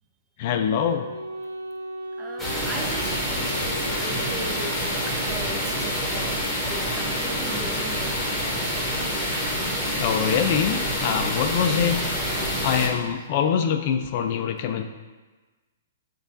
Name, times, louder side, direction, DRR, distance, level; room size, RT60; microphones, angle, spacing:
voice 1, 0.4-1.1 10.0-12.0 12.6-14.8, left 8 dB, 45° left, 6 dB, 0.3 m, -24 dB
Wind instrument woodwind instrument, 0.9-5.3, right 1 dB, 85° right, 0.4 m, -37 dB
voice 2, 2.2-8.4, right 3 dB, 20° right, 3 dB, 0.4 m, -39 dB
sound 1, 2.4-12.9, equal, 5° left, 1.0 m, -27 dB
6.2 x 2.3 x 2.6 m, 1.3 s
hypercardioid pair, 125°, 0 cm